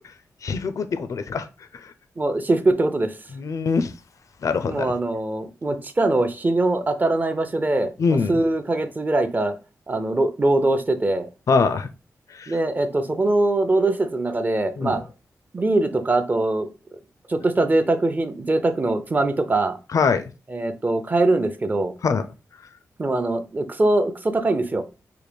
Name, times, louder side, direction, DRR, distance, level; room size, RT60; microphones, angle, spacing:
voice 1, 0.4-1.5 1.8-1.9 3.3-3.9 4.4-4.9 8.0-8.4 11.5-11.9 12.3-12.6 14.8-15.0 19.9-20.3 22.0-22.3, left 5 dB, 60° left, 11 dB, 0.4 m, -23 dB
voice 2, 2.2-3.1 4.7-9.6 9.9-11.3 12.5-15.1 15.5-16.7 17.3-19.8 20.5-21.9 23.0-24.8, right 2 dB, 30° right, 10 dB, 0.5 m, -22 dB
4.7 x 2.2 x 3.3 m, 0.32 s
cardioid pair, 75°, 6 cm